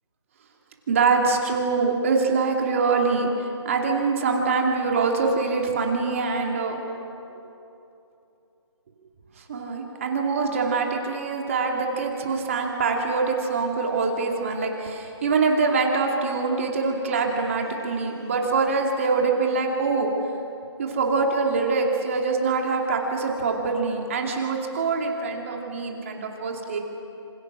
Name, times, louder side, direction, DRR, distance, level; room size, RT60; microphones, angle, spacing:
voice 1, 0.9-6.8 9.4-20.1 20.8-26.8, right 4 dB, 30° right, 1 dB, 2.5 m, -24 dB
27.5 x 27.0 x 6.2 m, 2.8 s
hypercardioid pair, 170°, 15 cm